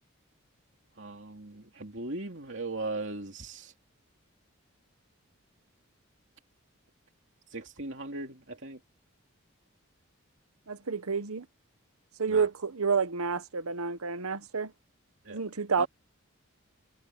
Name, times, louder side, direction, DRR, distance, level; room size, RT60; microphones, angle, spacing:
voice 1, 1.0-3.7 7.5-8.8 12.3-12.5 15.2-15.4 15.8-15.9, right 2 dB, 55° right, 2.9 m, -38 dB
voice 2, 10.7-11.5 12.2-14.7 15.3-15.9, right 5 dB, 90° right, 1.1 m, -29 dB
head